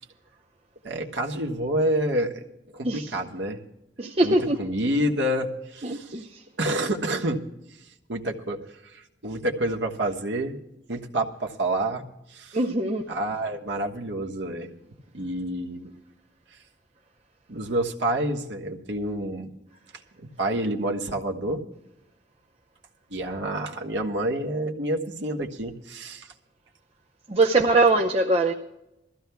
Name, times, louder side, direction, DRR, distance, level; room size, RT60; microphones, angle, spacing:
voice 1, 0.8-2.4 2.7-3.6 4.2-6.3 6.6-7.5 8.1-10.6 10.9-12.6 13.1-14.7 15.1-15.9 17.5-19.5 20.2-21.6 23.1-26.3, right 1 dB, 75° right, 1 dB, 1.4 m, -28 dB
voice 2, 4.0-4.6 5.8-6.4 12.5-13.1 27.3-28.5, right 2 dB, 35° right, 1 dB, 0.8 m, -22 dB
22.0 x 14.5 x 2.3 m, 0.91 s
head